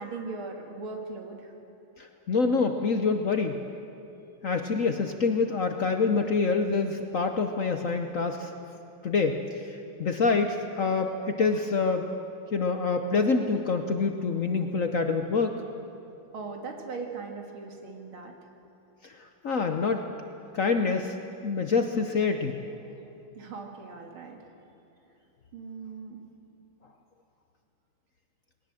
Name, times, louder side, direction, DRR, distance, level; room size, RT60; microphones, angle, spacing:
voice 1, 0.0-1.5 16.3-18.3 23.3-24.4 25.5-26.2, right 4 dB, 80° right, 2 dB, 2.9 m, -39 dB
voice 2, 2.0-3.6 4.4-8.5 9.0-12.1 12.5-15.6 19.0-20.1 20.5-21.2 21.4-22.6, left 4 dB, 55° left, 6 dB, 0.9 m, -26 dB
20.5 x 18.5 x 7.6 m, 2.8 s
omnidirectional pair, 2.3 m